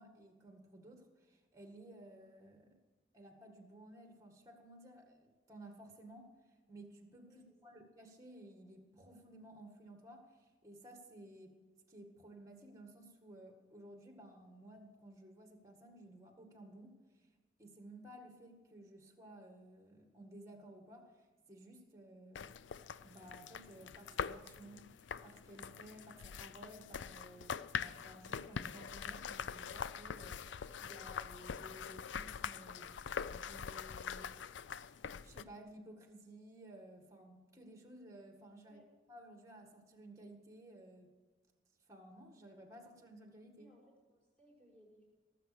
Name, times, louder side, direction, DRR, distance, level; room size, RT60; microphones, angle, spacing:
voice 1, 0.0-2.8 3.1-11.6 11.9-17.3 17.6-22.5 23.0-24.8 25.2-33.0 33.3-34.5 35.2-38.8 39.1-41.1 41.9-43.7, right 1 dB, 15° right, 4 dB, 1.8 m, -56 dB
voice 2, 7.3-7.7 38.6-38.9 43.6-45.0, equal, 5° left, -5 dB, 5.8 m, -65 dB
sound 1, 22.3-35.4, left 7 dB, 80° left, 0.4 m, -44 dB
18.5 x 7.6 x 6.9 m, 1.3 s
head